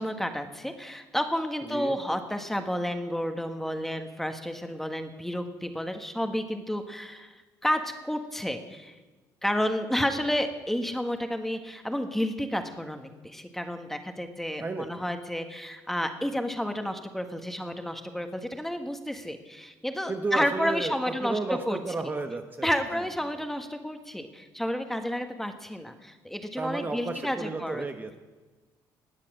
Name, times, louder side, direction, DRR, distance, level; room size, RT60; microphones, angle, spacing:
voice 1, 0.0-9.0 9.4-21.8 22.6-27.8, equal, 5° left, 7 dB, 1.6 m, -31 dB
voice 2, 1.6-2.0 14.6-15.1 20.1-23.4 26.6-28.2, right 3 dB, 25° right, 5 dB, 1.1 m, -33 dB
19.5 x 7.5 x 7.5 m, 1.3 s
cardioid pair, 95°, 8 cm